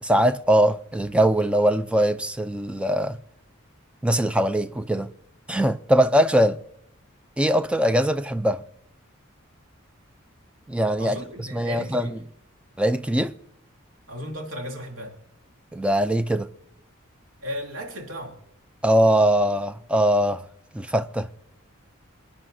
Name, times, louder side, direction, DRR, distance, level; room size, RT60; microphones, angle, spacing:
voice 1, 0.0-3.2 4.0-5.1 5.5-6.6 7.4-8.6 10.7-12.2 12.8-13.3 15.7-16.5 18.8-20.4 20.7-21.3, right 1 dB, 5° right, 0.4 m, -21 dB
voice 2, 11.0-12.2 14.1-15.2 17.4-18.4, equal, 70° right, 3.0 m, -35 dB
28.0 x 9.9 x 2.7 m
head